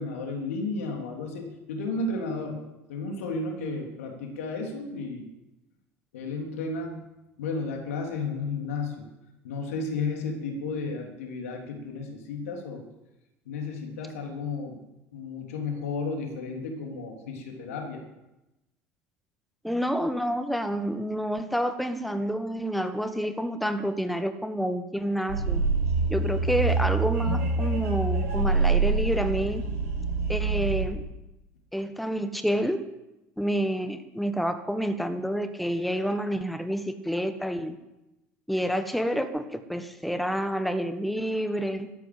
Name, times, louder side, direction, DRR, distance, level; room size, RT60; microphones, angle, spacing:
voice 1, 0.0-2.6 2.9-5.3 6.1-7.0 7.4-9.0 9.4-12.8 13.4-14.8 15.1-18.0, left 3 dB, 75° left, 2 dB, 3.4 m, -33 dB
voice 2, 19.6-25.6 26.1-29.6 30.3-31.0 31.7-32.9 33.4-37.7 38.5-41.9, equal, ahead, 9 dB, 1.4 m, -28 dB
sound 1, 25.3-30.8, right 4 dB, 80° right, 6.7 m, -25 dB
13.5 x 11.5 x 7.9 m, 0.96 s
hypercardioid pair, 65°, 8 cm